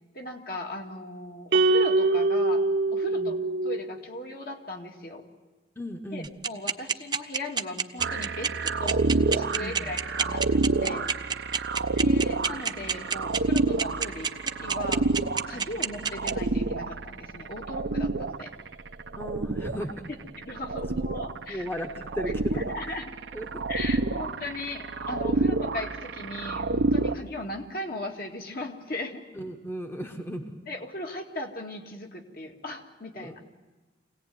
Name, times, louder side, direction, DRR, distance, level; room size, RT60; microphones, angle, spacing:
voice 1, 0.1-2.6 2.9-3.4 3.6-5.2 6.1-11.4 11.9-15.1 15.5-18.5 20.4-21.7 22.3-23.1 23.7-29.2 30.7-33.5, left 1 dB, 55° left, 2 dB, 2.1 m, -38 dB
sound 1, 1.5-4.0, right 2 dB, 70° right, 1.0 m, -23 dB
voice 2, 5.8-6.3 9.6-9.9 11.8-11.9 15.5-15.6 19.2-20.1 21.5-22.3 23.3-23.6 25.3-25.6 29.3-30.4 33.2-33.4, equal, 15° left, 4 dB, 1.1 m, -36 dB
sound 2, 6.2-16.3, right 6 dB, 25° right, 0.7 m, -26 dB
sound 3, 8.0-27.1, right 3 dB, 85° right, 0.8 m, -29 dB
24.5 x 17.5 x 9.4 m, 1.2 s
head